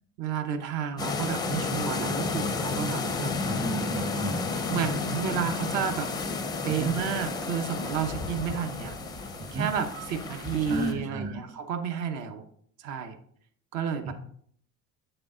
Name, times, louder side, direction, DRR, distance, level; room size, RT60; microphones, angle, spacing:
voice 1, 0.2-3.5 4.7-6.1 6.6-9.0 9.5-12.4 12.8-13.2 13.7-14.1, right 7 dB, 60° right, 6 dB, 0.9 m, -31 dB
sound 1, 1.0-10.9, left 4 dB, 10° left, 0.4 m, -32 dB
sound 2, 3.1-11.1, right 5 dB, 85° right, 1.2 m, -50 dB
voice 2, 3.4-4.5 6.8-7.0 9.4-9.7 10.6-11.4 14.0-14.1, right 3 dB, 20° right, 5 dB, 0.8 m, -32 dB
7.9 x 6.7 x 3.7 m, 0.62 s
cardioid pair, 180°, 34 cm